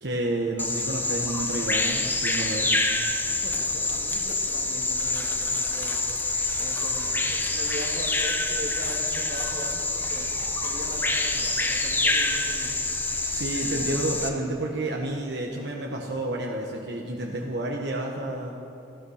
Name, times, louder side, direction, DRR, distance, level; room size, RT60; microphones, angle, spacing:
voice 1, 0.0-2.7 13.3-18.5, right 1 dB, 70° right, -1 dB, 1.2 m, -30 dB
Bird vocalization bird call bird song, 0.6-14.3, left 2 dB, 10° left, 0.8 m, -26 dB
voice 2, 3.2-6.0 6.6-12.8, right 1 dB, 50° right, 1 dB, 1.9 m, -40 dB
15.5 x 12.5 x 6.5 m, 2.9 s
head